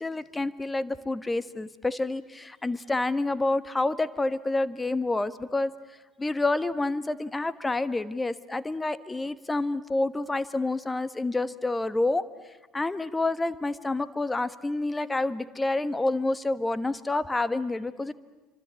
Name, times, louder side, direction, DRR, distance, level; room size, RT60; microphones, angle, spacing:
voice 1, 0.0-5.7 6.2-12.3 12.7-18.1, left 2 dB, 15° left, 15 dB, 1.3 m, -28 dB
27.5 x 25.0 x 8.4 m, 1.1 s
hypercardioid pair, 65°, 0 cm